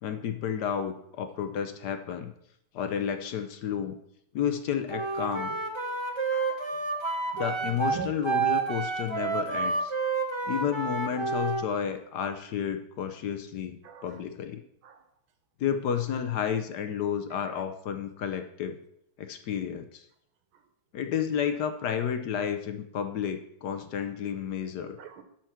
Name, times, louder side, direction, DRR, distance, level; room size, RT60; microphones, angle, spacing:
voice 1, 0.0-2.3 2.7-4.0 4.3-5.5 7.4-9.9 10.5-14.6 15.6-18.8 19.2-20.0 20.9-25.0, left 8 dB, 65° left, 7 dB, 1.1 m, -31 dB
Wind instrument woodwind instrument, 4.9-11.6, right 4 dB, 30° right, 0.5 m, -29 dB
voice 2, 6.0-6.8 7.4-8.1 13.8-14.2 14.8-15.0 17.4-17.5 25.0-25.2, right 6 dB, 90° right, 8 dB, 1.8 m, -43 dB
12.0 x 4.6 x 5.8 m, 0.75 s
omnidirectional pair, 2.2 m